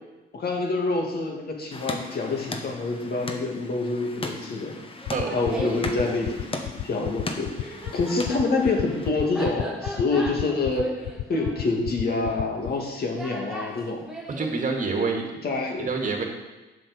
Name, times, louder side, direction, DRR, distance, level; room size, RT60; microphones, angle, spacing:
voice 1, 0.3-4.7 5.3-10.9 11.3-14.0 15.4-15.9, left 3 dB, 50° left, 1 dB, 2.3 m, -27 dB
sound 1, 1.7-9.1, left 2 dB, 25° left, 1.1 m, -37 dB
Laughter, 5.0-6.1 7.3-14.6, right 1 dB, 5° right, 1.8 m, -38 dB
sound 2, 5.1-12.7, left 15 dB, 85° left, 0.4 m, -30 dB
voice 2, 14.4-15.3 15.8-16.3, right 4 dB, 40° right, 2 dB, 2.0 m, -26 dB
7.6 x 6.2 x 6.7 m, 1.1 s
cardioid pair, 90°, 20 cm